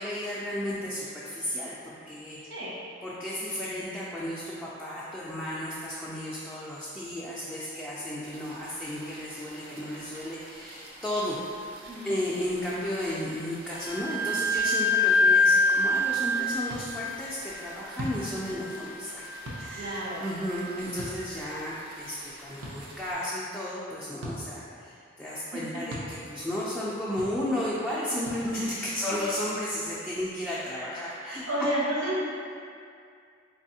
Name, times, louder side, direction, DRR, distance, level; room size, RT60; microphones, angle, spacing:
voice 1, 0.0-2.4 3.0-11.4 12.0-19.9 20.2-31.4, left 1 dB, 5° left, -9 dB, 0.3 m, -33 dB
sound 1, 8.2-23.1, right 1 dB, 50° right, 0.6 m, -49 dB
voice 2, 11.9-12.2 19.7-20.2 25.3-25.6 30.7-32.2, right 1 dB, 70° right, -7 dB, 1.0 m, -32 dB
Wind instrument woodwind instrument, 13.7-21.1, left 2 dB, 50° left, 0.5 m, -27 dB
sound 2, 16.7-16.8 17.9-18.2 19.4-19.6 21.0-21.1 22.6-22.7 24.2-24.4 25.9-26.1 27.2-27.3 28.2-28.4, equal, 85° right, 0.7 m, -37 dB
3.9 x 3.4 x 2.7 m, 2.3 s
head